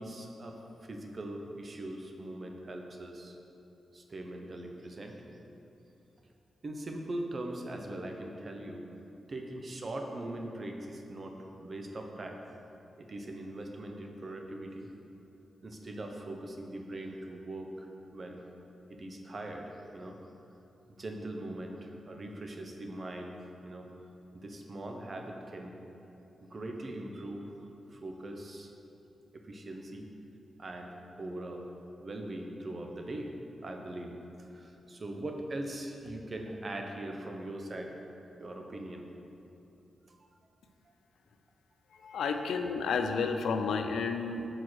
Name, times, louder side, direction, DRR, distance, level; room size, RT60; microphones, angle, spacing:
voice 1, 0.0-3.4 3.9-5.2 6.6-8.9 9.3-12.4 13.0-14.9 15.6-18.4 18.9-20.2 21.0-23.9 24.3-25.8 26.4-27.5 27.9-28.7 29.3-30.1 30.6-31.7 32.0-33.3 33.6-38.0 38.4-39.1 40.1-40.2, right 1 dB, 40° right, 2 dB, 0.8 m, -41 dB
voice 2, 41.9-44.5, left 5 dB, 85° left, 6 dB, 0.5 m, -31 dB
6.4 x 4.5 x 6.2 m, 3.0 s
cardioid pair, 80°, 0 cm